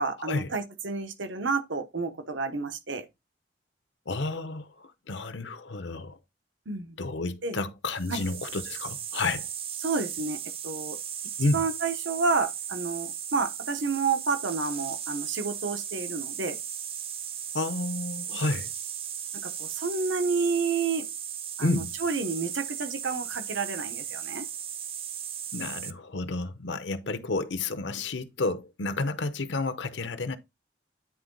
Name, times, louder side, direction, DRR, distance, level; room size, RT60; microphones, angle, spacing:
voice 1, 0.0-3.0 6.7-7.0 7.4-7.6 8.1-8.2 9.8-10.4 10.6-11.0 11.4-16.6 19.4-21.0 21.6-24.4, right 4 dB, 85° right, 1.1 m, -30 dB
voice 2, 4.1-6.2 7.0-9.5 11.4-11.6 17.5-18.7 21.6-22.0 25.5-30.4, left 3 dB, 75° left, 0.8 m, -31 dB
sound 1, 7.9-25.9, right 9 dB, 30° right, 0.6 m, -36 dB
9.8 x 3.8 x 3.8 m
head